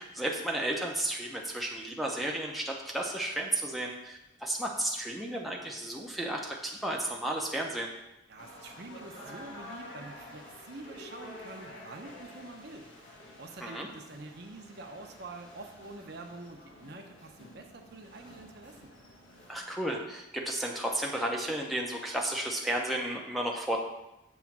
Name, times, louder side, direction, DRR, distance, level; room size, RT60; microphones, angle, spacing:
voice 1, 0.0-7.9 13.6-13.9 19.5-23.8, right 1 dB, ahead, -2 dB, 0.6 m, -33 dB
voice 2, 8.3-12.9 13.3-18.9, right 2 dB, 55° right, 4 dB, 0.7 m, -46 dB
sound 1, 8.4-19.6, left 1 dB, 70° left, 1.4 m, -50 dB
7.2 x 3.1 x 5.8 m, 0.93 s
head